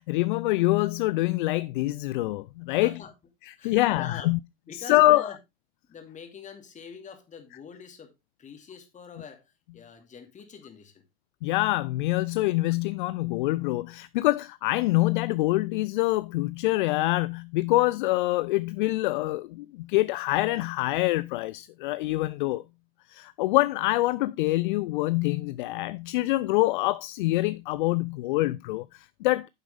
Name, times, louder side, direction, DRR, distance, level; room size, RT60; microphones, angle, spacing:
voice 1, 0.0-2.9 3.4-4.4 4.8-5.3 11.4-22.6 23.1-29.5, left 19 dB, 55° left, 0.4 m, -25 dB
voice 2, 2.7-3.1 3.6-4.3 4.7-5.4 5.9-8.1 8.4-11.0, left 6 dB, 25° left, 2.5 m, -44 dB
9.5 x 7.6 x 3.4 m
figure-of-eight pair, 90°, 31 cm